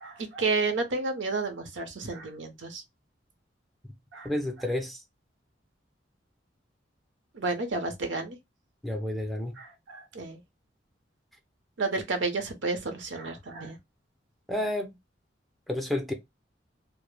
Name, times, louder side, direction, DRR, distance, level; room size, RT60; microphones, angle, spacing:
voice 1, 0.0-2.8 4.1-4.3 7.3-8.4 9.6-10.4 11.8-13.8, right 3 dB, 80° right, 0.6 m, -31 dB
voice 2, 4.2-5.0 8.8-9.5 14.5-14.9 15.7-16.1, left 1 dB, ahead, 0.4 m, -30 dB
2.1 x 2.0 x 3.0 m
head